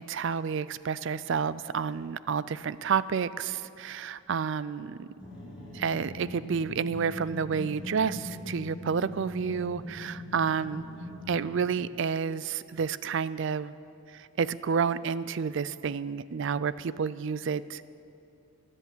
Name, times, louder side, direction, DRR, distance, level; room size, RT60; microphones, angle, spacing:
voice 1, 0.0-5.1 5.7-10.8 11.3-13.7 14.1-17.9, right 6 dB, 55° right, 17 dB, 0.4 m, -30 dB
sound 1, 5.2-11.9, left 1 dB, 5° right, 3.7 m, -41 dB
20.0 x 8.3 x 7.3 m, 2.8 s
head